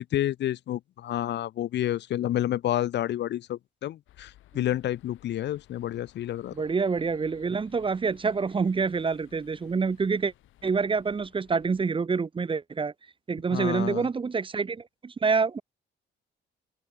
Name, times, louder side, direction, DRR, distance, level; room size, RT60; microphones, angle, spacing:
voice 1, 0.0-6.7 13.5-14.1, left 12 dB, 60° left, 0.6 m, -29 dB
sound 1, 4.1-11.9, left 14 dB, 85° left, 6.9 m, -58 dB
voice 2, 6.5-10.3 10.6-12.9 13.3-15.6, right 5 dB, 25° right, 0.7 m, -27 dB
cardioid pair, 90°, 20 cm